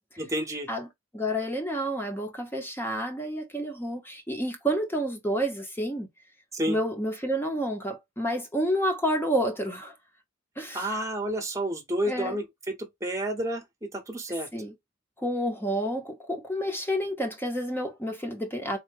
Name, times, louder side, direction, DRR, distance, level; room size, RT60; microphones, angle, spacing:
voice 1, 0.2-0.7 6.5-6.8 10.7-12.7 13.0-14.5, right 1 dB, 15° right, 1.0 m, -30 dB
voice 2, 1.1-6.1 6.7-9.9 10.6-10.9 12.1-12.4 14.5-14.7 15.2-18.8, equal, 10° left, 0.8 m, -29 dB
3.7 x 2.2 x 3.5 m
head